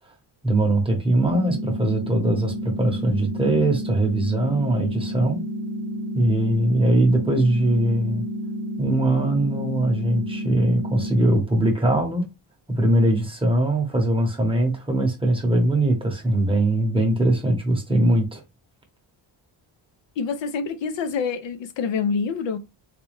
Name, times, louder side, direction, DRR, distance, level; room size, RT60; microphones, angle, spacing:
voice 1, 0.4-5.4 6.1-8.2 8.8-12.3 12.7-18.4, right 1 dB, 10° right, 0.8 m, -21 dB
sound 1, 1.2-11.3, equal, 40° right, 0.8 m, -30 dB
voice 2, 20.2-22.6, left 5 dB, 75° left, 0.6 m, -26 dB
4.1 x 2.2 x 3.1 m
wide cardioid pair, 180°, 45 cm